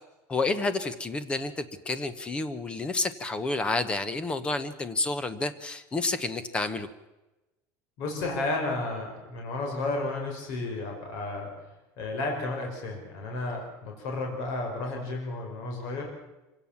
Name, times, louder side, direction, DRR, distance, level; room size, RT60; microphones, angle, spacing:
voice 1, 0.3-6.9, left 3 dB, 15° left, 13 dB, 1.0 m, -30 dB
voice 2, 8.0-11.5 12.0-16.1, left 2 dB, 50° left, 1 dB, 4.8 m, -32 dB
25.5 x 17.0 x 7.2 m, 1.0 s
cardioid pair, 175°, 8 cm